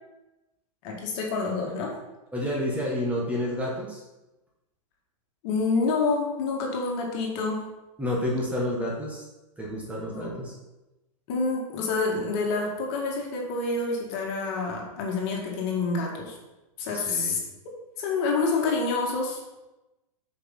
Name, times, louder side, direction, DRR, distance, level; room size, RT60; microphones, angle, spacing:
voice 1, 0.8-1.9 5.4-7.6 10.1-10.4 11.3-16.4 16.8-17.4 18.0-19.4, left 3 dB, 50° left, -1 dB, 1.9 m, -27 dB
voice 2, 2.3-4.0 8.0-9.2 9.6-10.5 16.9-17.4, left 1 dB, 10° right, -4 dB, 1.6 m, -29 dB
6.6 x 5.1 x 3.8 m, 1.0 s
hypercardioid pair, 115°, 18 cm